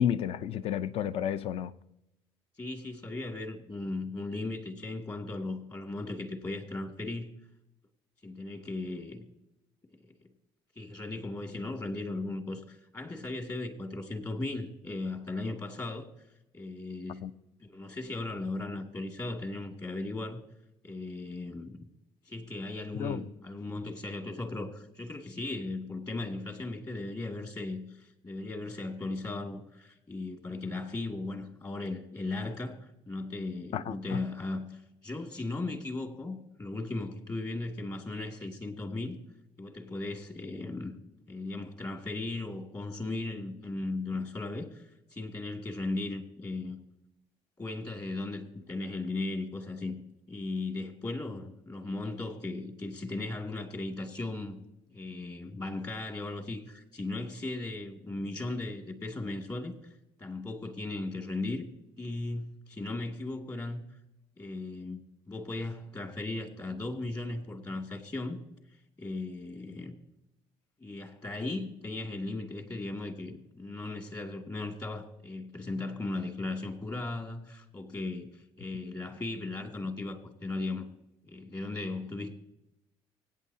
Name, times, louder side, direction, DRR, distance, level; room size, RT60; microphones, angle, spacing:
voice 1, 0.0-1.7 17.2-17.3 23.0-23.3 33.7-34.2, left 9 dB, 60° left, 0.6 m, -31 dB
voice 2, 2.6-7.3 8.2-9.3 10.8-16.1 16.5-17.3 17.6-20.4 20.8-21.9 22.3-39.2 39.6-41.0 41.3-46.8 47.6-50.0 50.3-54.6 54.9-61.7 62.0-63.8 64.4-65.0 65.3-68.4 69.0-70.0 70.8-80.9 81.2-82.3, left 2 dB, 35° left, 2.3 m, -37 dB
24.5 x 9.0 x 2.8 m
supercardioid pair, 75°, 11 cm